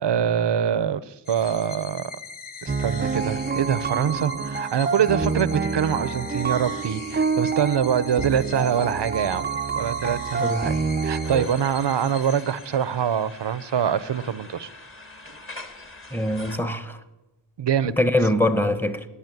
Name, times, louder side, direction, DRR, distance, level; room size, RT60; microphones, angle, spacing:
voice 1, 0.0-2.1 2.6-10.8 11.0-14.7 17.6-18.0, right 8 dB, 65° right, 0.7 m, -24 dB
sound 1, 1.2-13.2, left 4 dB, 45° left, 1.2 m, -41 dB
sound 2, 2.7-11.5, right 5 dB, 20° right, 0.5 m, -27 dB
sound 3, 11.2-16.6, left 2 dB, 25° left, 1.7 m, -43 dB
voice 2, 16.1-17.0 17.8-19.1, left 1 dB, 5° left, 1.1 m, -23 dB
14.0 x 10.0 x 9.2 m
wide cardioid pair, 95°, 46 cm